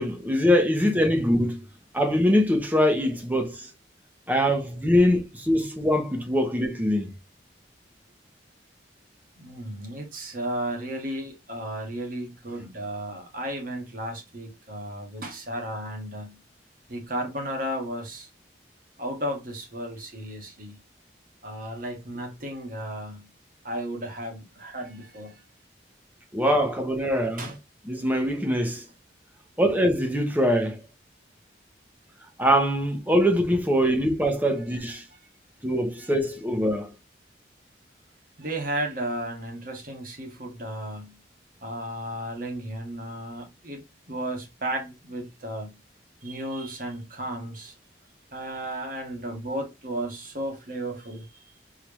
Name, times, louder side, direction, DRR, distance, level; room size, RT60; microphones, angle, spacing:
voice 1, 0.0-1.6 1.9-3.7 4.3-7.1 26.3-27.5 27.9-28.8 29.6-30.8 32.4-35.0 35.6-36.9, equal, 10° right, 0.9 m, -23 dB
voice 2, 9.4-16.4 16.9-18.3 19.0-20.8 21.4-23.3 23.6-25.4 27.4-27.5 34.9-35.0 36.0-36.1 38.4-41.2 41.6-43.8 44.1-45.7 46.2-47.7 48.3-51.3, right 1 dB, 50° right, 1.6 m, -34 dB
4.5 x 3.4 x 3.0 m
head